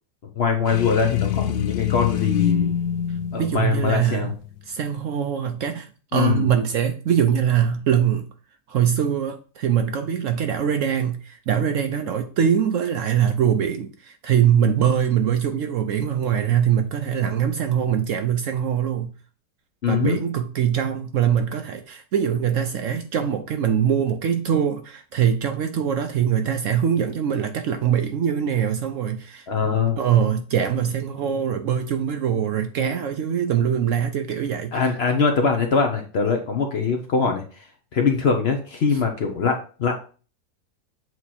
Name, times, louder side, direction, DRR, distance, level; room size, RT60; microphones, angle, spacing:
voice 1, 0.4-2.7 3.3-4.3 6.1-6.5 19.8-20.2 29.5-30.0 34.7-37.4 37.9-39.9, left 5 dB, 50° left, 0.8 m, -22 dB
sound 1, 0.7-4.6, left 10 dB, 90° left, 1.2 m, -25 dB
voice 2, 3.4-4.3 4.7-8.3 8.7-19.1 19.9-29.5 30.0-34.9, right 8 dB, 65° right, 0.8 m, -23 dB
7.8 x 3.0 x 4.2 m
omnidirectional pair, 1.7 m